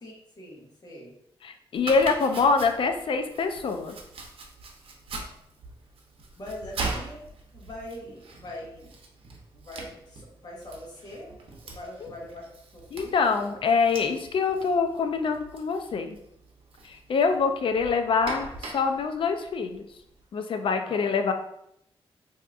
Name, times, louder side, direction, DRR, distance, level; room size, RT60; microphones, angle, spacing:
voice 1, 0.0-1.1 6.4-7.2 7.5-9.0 9.5-11.3 11.6-13.6 20.6-21.0, left 1 dB, 45° left, -3 dB, 1.2 m, -43 dB
voice 2, 1.4-4.0 12.0-12.1 12.9-16.2 16.8-19.8 20.3-21.3, left 5 dB, 60° left, 6 dB, 0.5 m, -25 dB
Domestic sounds home sounds, 1.8-20.2, right 3 dB, 70° right, 0.7 m, -41 dB
4.5 x 2.7 x 2.4 m, 0.73 s
cardioid pair, 100°, 10 cm